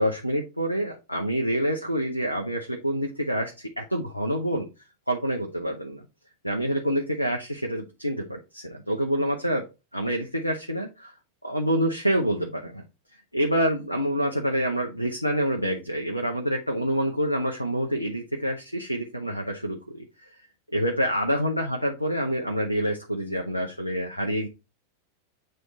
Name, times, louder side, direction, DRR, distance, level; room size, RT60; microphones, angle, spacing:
voice 1, 0.0-4.7 5.1-6.0 6.4-9.6 9.9-11.1 11.4-12.8 13.3-20.3 20.7-24.5, equal, 90° left, 2 dB, 0.8 m, -27 dB
7.7 x 3.4 x 4.0 m, 0.27 s
figure-of-eight pair, 90°, 0 cm